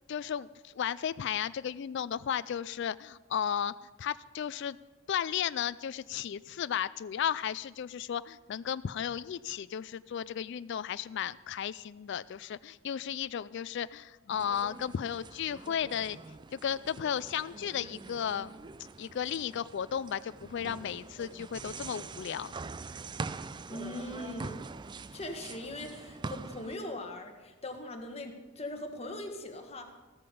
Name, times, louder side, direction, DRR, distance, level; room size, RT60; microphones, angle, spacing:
voice 1, 0.1-4.8 5.1-16.2 16.5-18.5 19.0-22.5, left 8 dB, 60° left, 16 dB, 0.3 m, -34 dB
sound 1, 14.3-26.8, right 4 dB, 25° right, 0.4 m, -44 dB
voice 2, 23.7-24.6 25.1-29.9, left 1 dB, 30° left, 4 dB, 1.6 m, -40 dB
14.5 x 13.5 x 5.3 m, 1.2 s
head